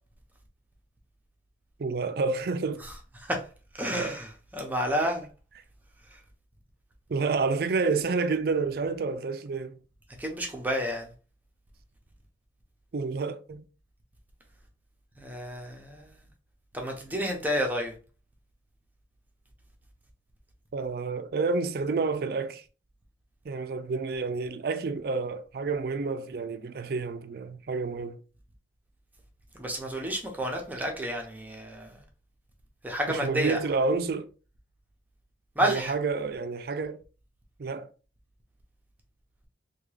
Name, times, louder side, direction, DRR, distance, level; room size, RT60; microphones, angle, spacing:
voice 1, 1.8-2.8 3.9-4.2 5.0-5.2 7.1-9.8 12.9-13.6 20.7-22.6 23.4-28.2 33.1-34.3 35.6-37.0 37.6-37.9, right 4 dB, 55° right, 0.4 m, -29 dB
voice 2, 3.7-5.3 6.1-6.2 10.2-11.1 15.2-16.3 16.7-17.9 29.5-32.0 32.8-33.6 35.6-35.9, equal, 10° right, 0.7 m, -30 dB
3.5 x 2.3 x 3.2 m
head